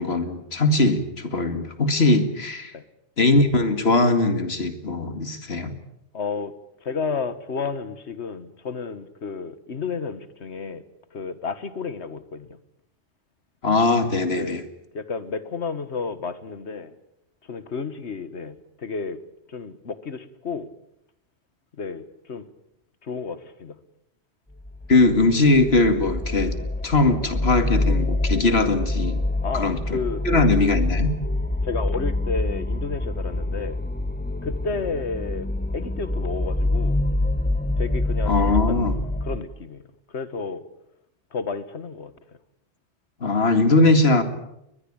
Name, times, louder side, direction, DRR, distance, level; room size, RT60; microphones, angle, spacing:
voice 1, 0.0-2.7 3.2-5.7 13.6-14.6 24.9-26.6 26.8-29.2 29.5-30.0 30.2-31.1 38.3-38.9 43.2-44.2, left 2 dB, 70° left, 9 dB, 2.5 m, -20 dB
voice 2, 6.1-6.5 6.8-10.8 11.1-12.6 14.3-14.6 14.9-16.9 17.5-19.2 19.5-20.7 21.8-22.5 23.0-23.8 29.4-30.6 31.6-33.8 34.4-37.0 37.8-39.8 40.1-40.7 41.3-42.1, left 5 dB, 90° left, 14 dB, 1.7 m, -32 dB
sound 1, 24.6-39.4, left 2 dB, 10° left, 1.0 m, -26 dB
22.5 x 20.5 x 8.8 m, 0.82 s
omnidirectional pair, 1.1 m